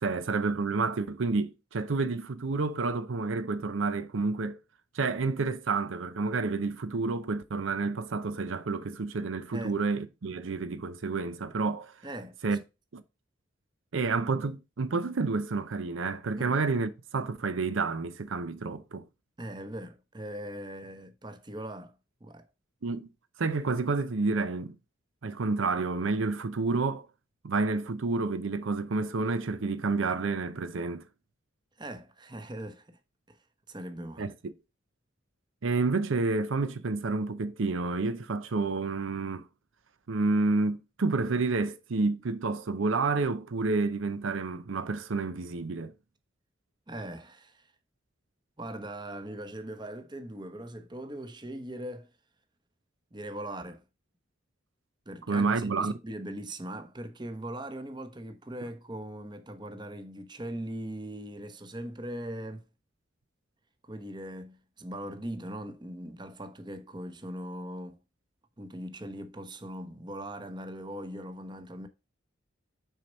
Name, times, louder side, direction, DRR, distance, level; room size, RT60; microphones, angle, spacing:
voice 1, 0.0-4.6 4.9-11.9 12.4-12.6 12.9-13.0 13.9-19.0 22.8-23.1 23.4-24.8 25.2-27.1 27.4-31.0 34.2-34.5 35.6-39.5 40.1-45.9 55.3-55.9, right 3 dB, 70° right, 0.6 m, -29 dB
voice 2, 12.0-12.6 16.4-16.6 19.4-21.9 22.2-22.5 31.8-33.0 33.3-33.4 33.7-34.3 46.9-47.7 48.6-52.1 53.1-53.8 55.1-62.6 63.8-68.0 68.6-71.9, right 1 dB, 20° right, 0.9 m, -40 dB
6.5 x 4.3 x 5.2 m
head